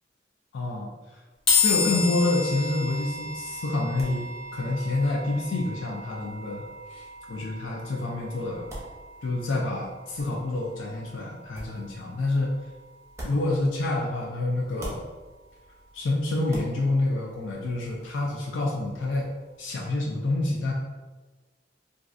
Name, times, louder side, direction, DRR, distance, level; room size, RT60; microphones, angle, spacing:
voice 1, 0.5-0.9 1.6-4.3 4.5-6.6 6.9-8.7 9.2-12.5 13.2-15.0 15.9-19.3 19.6-20.7, left 2 dB, 90° left, -1 dB, 0.4 m, -28 dB
sound 1, 1.5-14.8, left 4 dB, 30° left, 0.9 m, -33 dB
sound 2, 3.1-14.3 14.5-18.0, equal, 15° right, 0.7 m, -47 dB
3.0 x 2.6 x 2.5 m, 1.3 s
head